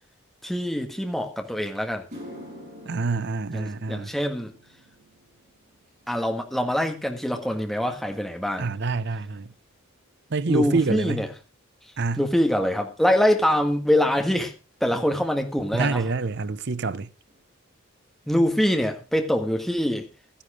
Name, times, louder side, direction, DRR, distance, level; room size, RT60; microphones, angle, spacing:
voice 1, 0.4-2.1 3.5-4.5 6.1-8.7 10.5-11.3 12.2-14.5 14.8-16.0 18.3-20.1, equal, ahead, 1.5 m, -24 dB
Low piano resonant strike, 2.1-10.4 10.7-11.1 11.9-12.0 14.7-14.8 16.5-16.6 16.8-17.0 17.3-17.8 18.2-18.3 18.8-18.9, equal, 35° right, 7.7 m, -49 dB
voice 2, 2.9-4.1 8.6-9.5 10.3-11.2 12.0-12.2 15.7-17.1, right 3 dB, 55° right, 0.6 m, -26 dB
13.0 x 10.0 x 4.9 m
head